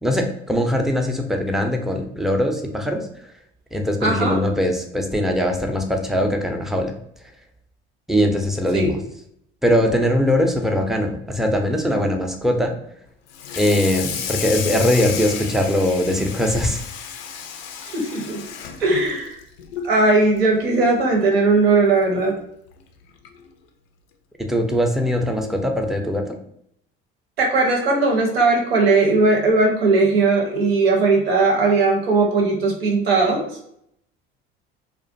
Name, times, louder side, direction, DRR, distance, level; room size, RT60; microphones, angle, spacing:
voice 1, 0.0-3.1 3.7-6.9 8.1-9.0 9.6-12.7 13.6-16.8 24.5-26.3, left 1 dB, ahead, 3 dB, 0.4 m, -21 dB
voice 2, 4.0-4.4 8.7-8.9 17.8-18.4 18.8-19.4 19.8-22.4 27.4-33.5, right 3 dB, 90° right, 1 dB, 0.7 m, -18 dB
Water tap faucet / Sink (filling or washing), 13.3-20.0 20.4-20.6 21.0-21.1 21.5-21.6 22.7-22.8 23.2-23.5, left 7 dB, 80° left, 0.4 m, -32 dB
2.4 x 2.1 x 2.5 m, 0.72 s
hypercardioid pair, 70°, 29 cm